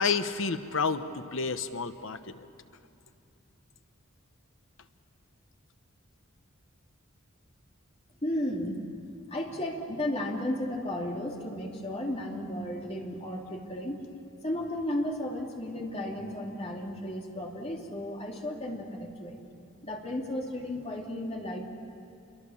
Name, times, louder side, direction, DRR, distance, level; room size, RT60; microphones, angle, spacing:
voice 1, 0.0-2.4, left 5 dB, 65° left, 10 dB, 1.0 m, -30 dB
voice 2, 8.2-8.8 9.3-14.0 14.4-19.4 19.8-21.6, left 1 dB, 30° left, 0 dB, 2.7 m, -34 dB
28.0 x 23.0 x 7.2 m, 2.7 s
head